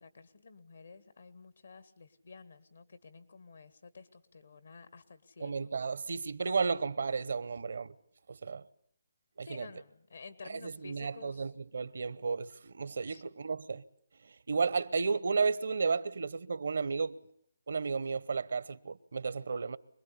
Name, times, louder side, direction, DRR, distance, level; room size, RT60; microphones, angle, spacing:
voice 1, 0.0-5.7 6.7-6.8 9.4-11.5 13.1-13.2, left 4 dB, 75° left, 1.8 m, -52 dB
voice 2, 5.4-7.9 8.3-8.6 9.4-9.7 10.5-13.8 14.5-17.2 17.7-19.8, right 5 dB, 70° right, 1.0 m, -33 dB
25.5 x 20.0 x 8.4 m
hypercardioid pair, 155°, 0 cm